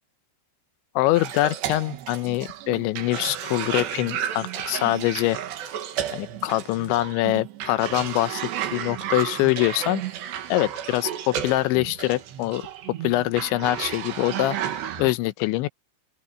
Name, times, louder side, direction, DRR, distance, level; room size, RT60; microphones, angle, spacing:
voice 1, 1.0-5.4 6.1-10.0 10.5-12.7 13.0-15.7, left 17 dB, 85° left, 3.2 m, -24 dB
Cough, 1.1-15.1, right 10 dB, 70° right, 4.0 m, -32 dB
open air
omnidirectional pair, 5.2 m